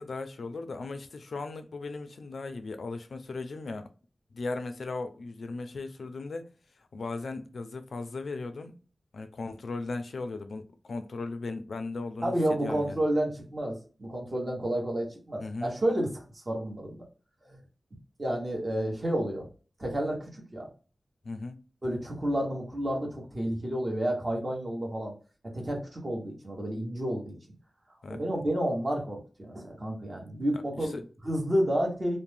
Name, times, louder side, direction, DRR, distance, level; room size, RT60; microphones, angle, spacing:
voice 1, 0.0-3.9 4.3-6.5 6.8-8.8 9.1-12.3 12.6-13.0 15.4-15.7 21.2-21.6 28.0-28.2 30.5-31.0, left 3 dB, 90° left, 0.4 m, -37 dB
voice 2, 12.2-17.0 17.4-17.6 18.2-19.5 19.8-20.7 21.8-25.1 25.5-27.4 28.1-32.2, right 1 dB, 40° right, 1.1 m, -30 dB
2.5 x 2.1 x 3.2 m
wide cardioid pair, 105°, 0 cm